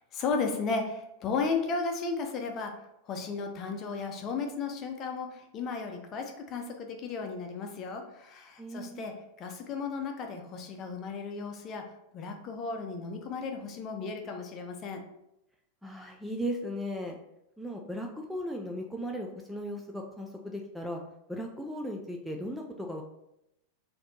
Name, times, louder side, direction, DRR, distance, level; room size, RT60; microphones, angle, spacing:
voice 1, 0.0-2.7 3.1-9.1 9.4-11.8 12.1-15.0, left 4 dB, 35° left, 4 dB, 0.7 m, -34 dB
voice 2, 8.6-9.1 15.8-17.2 17.6-21.0 21.3-23.0, equal, ahead, 1 dB, 0.4 m, -37 dB
4.2 x 2.8 x 4.1 m, 0.83 s
figure-of-eight pair, 90°, 0 cm